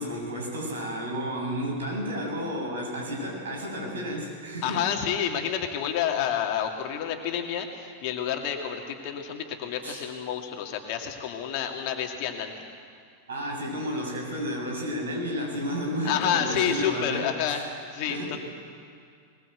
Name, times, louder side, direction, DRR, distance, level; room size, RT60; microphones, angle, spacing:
voice 1, 0.0-4.8 9.8-10.1 13.3-17.6 18.1-18.4, equal, 65° right, 0 dB, 7.0 m, -32 dB
voice 2, 4.6-12.7 16.0-18.4, left 8 dB, 45° left, 3 dB, 2.4 m, -29 dB
21.0 x 20.5 x 8.0 m, 2.3 s
figure-of-eight pair, 90°, 0 cm